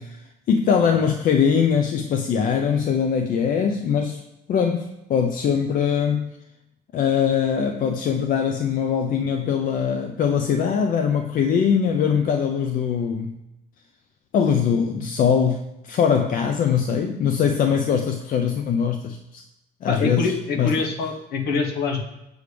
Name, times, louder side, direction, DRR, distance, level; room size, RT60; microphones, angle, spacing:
voice 1, 0.0-4.2 4.5-6.3 6.9-13.4 14.3-19.4 19.8-20.8, left 7 dB, 55° left, 5 dB, 0.5 m, -22 dB
voice 2, 19.9-22.0, left 4 dB, 70° left, 3 dB, 1.2 m, -25 dB
6.7 x 6.2 x 3.4 m, 0.91 s
cardioid pair, 110°, 17 cm